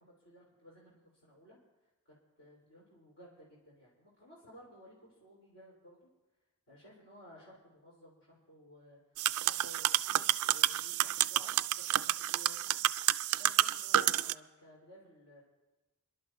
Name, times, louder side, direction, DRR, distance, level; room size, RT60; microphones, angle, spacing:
voice 1, 0.0-1.6 2.1-6.1 6.7-9.0 9.4-12.8 13.4-15.4, equal, 55° left, -6 dB, 3.8 m, -57 dB
sound 1, 9.2-14.3, right 13 dB, 75° right, 0.3 m, -30 dB
28.0 x 11.5 x 2.6 m, 1.1 s
head